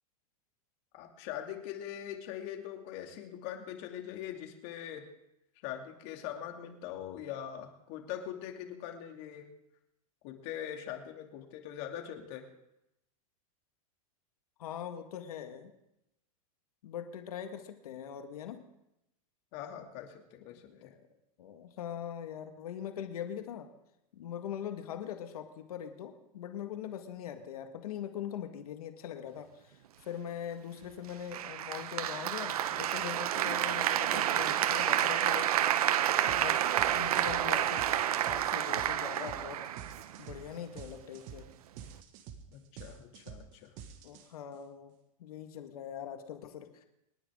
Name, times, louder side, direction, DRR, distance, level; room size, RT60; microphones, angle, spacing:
voice 1, 0.9-5.0 5.6-9.5 10.2-12.5 19.5-20.9 42.5-43.7, left 10 dB, 50° left, 3 dB, 2.6 m, -42 dB
voice 2, 14.6-15.7 16.8-18.6 20.7-21.0 21.4-23.7 24.1-35.5 36.3-39.6 40.2-41.5 44.0-44.9 45.2-46.7, left 9 dB, 80° left, 6 dB, 1.8 m, -42 dB
Applause, 31.3-40.3, right 11 dB, 85° right, 0.9 m, -29 dB
sound 1, 36.3-36.5 36.8-44.5, right 8 dB, 45° right, 1.7 m, -48 dB
27.0 x 10.5 x 3.8 m, 0.85 s
supercardioid pair, 140°, 19 cm